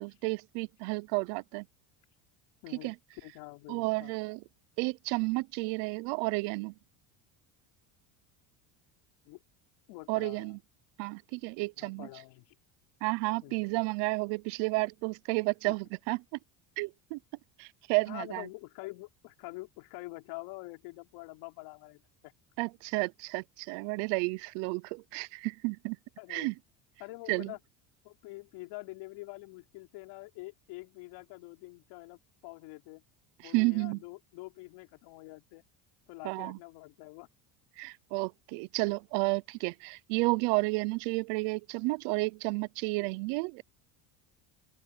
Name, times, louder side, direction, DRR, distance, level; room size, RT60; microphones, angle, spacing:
voice 1, 0.0-1.7 2.8-2.9 3.7-4.4 4.8-6.7 10.1-10.6 11.0-12.1 13.0-16.2 16.8-17.2 17.6-18.5 22.6-26.0 26.3-26.5 27.3-27.5 33.4-34.0 36.2-36.6 37.8-43.6, right 27 dB, 70° right, 0.7 m, -31 dB
voice 2, 2.6-4.2 9.3-9.4 9.9-10.6 11.8-12.5 13.4-13.6 15.7-15.8 18.1-22.3 26.2-26.5 27.0-27.6 28.0-33.0 33.4-35.6 36.1-37.3 43.0-43.1, left 22 dB, 70° left, 4.4 m, -46 dB
open air
cardioid pair, 175°, 44 cm